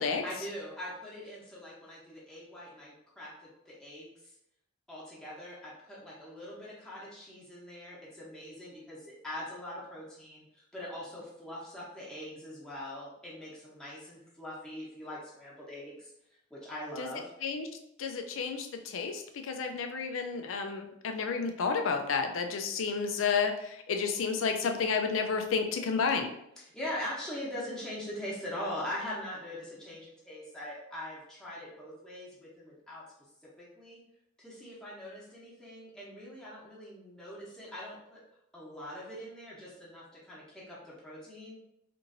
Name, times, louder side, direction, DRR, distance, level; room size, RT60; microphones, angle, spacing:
voice 1, 0.2-4.1 4.9-16.1 16.5-17.3 26.6-33.0 33.6-34.0 34.4-38.2 38.5-41.6, left 1 dB, 5° left, -8 dB, 0.8 m, -42 dB
voice 2, 18.0-26.3, left 5 dB, 80° left, 5 dB, 0.4 m, -31 dB
3.0 x 2.5 x 2.6 m, 0.79 s
head